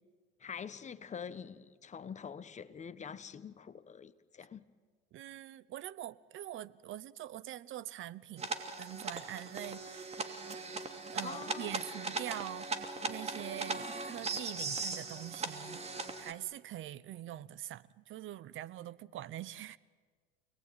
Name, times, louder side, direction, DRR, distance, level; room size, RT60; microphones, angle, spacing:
voice 1, 0.4-4.6 11.2-11.7, left 7 dB, 25° left, 1.3 m, -45 dB
voice 2, 5.1-8.5 8.8-10.0 11.1-19.8, right 13 dB, 40° right, 1.0 m, -44 dB
sound 1, 8.4-16.3, right 3 dB, 20° right, 2.8 m, -39 dB
29.0 x 19.5 x 9.5 m
supercardioid pair, 105°, 31 cm